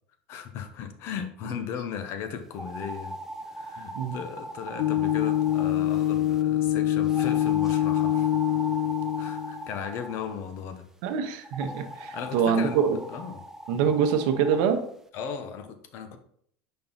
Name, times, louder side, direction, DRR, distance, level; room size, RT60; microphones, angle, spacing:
voice 1, 0.3-3.2 3.5-8.3 9.2-10.9 12.1-12.8 13.1-13.4 15.1-16.2, left 7 dB, 60° left, 8 dB, 0.8 m, -36 dB
sound 1, 2.5-6.4 7.1-10.4 11.4-14.7, right 1 dB, 10° right, 0.6 m, -40 dB
sound 2, 4.8-9.7, left 12 dB, 75° left, 0.3 m, -25 dB
voice 2, 11.0-13.0 13.7-14.8, right 7 dB, 75° right, 7 dB, 0.9 m, -25 dB
5.2 x 4.5 x 4.0 m, 0.65 s
supercardioid pair, 100°, 5 cm